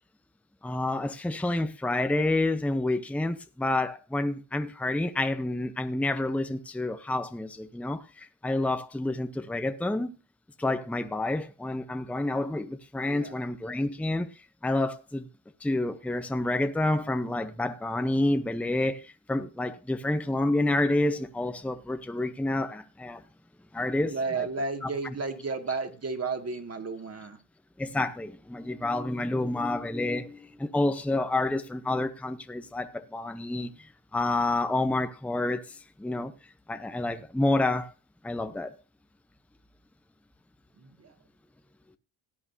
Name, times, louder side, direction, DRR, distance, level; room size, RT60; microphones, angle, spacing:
voice 1, 0.6-10.2 10.6-14.3 14.6-15.3 15.6-23.2 23.7-24.5 24.8-24.9 27.8-36.3 36.7-37.9 38.2-38.7, left 2 dB, 5° left, 0.8 m, -29 dB
voice 2, 13.0-13.3 24.1-27.4 40.8-41.1, right 4 dB, 30° right, 2.3 m, -33 dB
18.0 x 8.8 x 2.8 m
cardioid pair, 95°, 49 cm